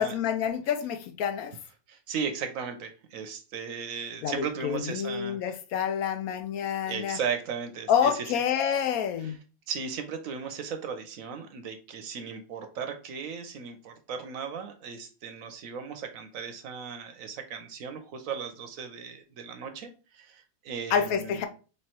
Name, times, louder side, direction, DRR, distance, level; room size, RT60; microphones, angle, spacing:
voice 1, 0.0-1.5 4.2-7.2 7.9-9.4 20.9-21.5, left 8 dB, 75° left, 1.0 m, -28 dB
voice 2, 1.9-5.6 6.8-8.3 9.2-9.4 9.7-21.5, right 6 dB, 70° right, 1.0 m, -36 dB
3.3 x 3.2 x 4.3 m
omnidirectional pair, 1.6 m